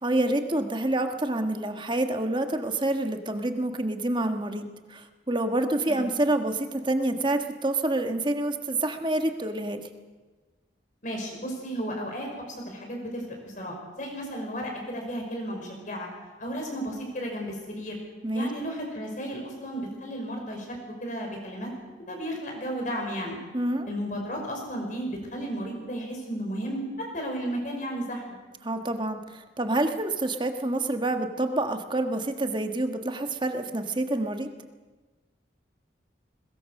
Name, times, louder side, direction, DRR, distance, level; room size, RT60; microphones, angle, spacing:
voice 1, 0.0-9.9 18.2-18.5 23.5-23.9 28.6-34.5, right 1 dB, 25° right, 6 dB, 1.4 m, -27 dB
voice 2, 11.0-12.3 12.7-16.1 16.4-18.0 18.3-21.7 22.1-23.4 23.9-28.4, equal, 45° left, 1 dB, 5.5 m, -34 dB
21.5 x 20.5 x 6.5 m, 1.3 s
head